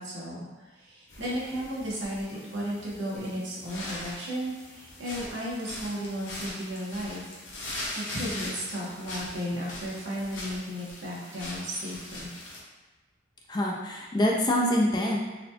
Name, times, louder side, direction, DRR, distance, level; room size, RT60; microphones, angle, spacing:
voice 1, 0.0-7.4 7.9-12.3, equal, 70° right, -6 dB, 1.0 m, -34 dB
sound 1, 1.1-12.6, left 1 dB, 75° left, 0.8 m, -41 dB
voice 2, 13.5-15.2, left 1 dB, 20° left, -2 dB, 0.3 m, -25 dB
4.0 x 2.3 x 2.8 m, 1.3 s
head